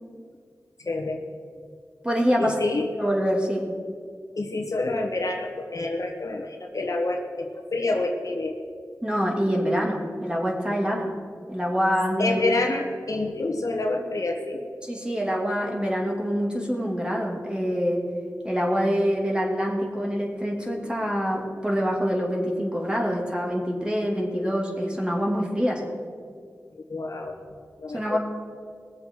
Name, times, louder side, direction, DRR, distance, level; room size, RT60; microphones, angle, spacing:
voice 1, 0.8-1.2 2.4-2.9 4.3-8.5 12.2-14.6 26.7-27.4 27.8-28.2, left 2 dB, 60° left, 2 dB, 1.5 m, -28 dB
voice 2, 2.0-2.5 3.0-3.7 9.0-11.1 11.5-12.4 14.8-18.0 18.4-25.9 27.9-28.2, equal, 15° right, -1 dB, 2.6 m, -25 dB
20.0 x 7.6 x 4.7 m, 2.1 s
wide cardioid pair, 55°, 6 cm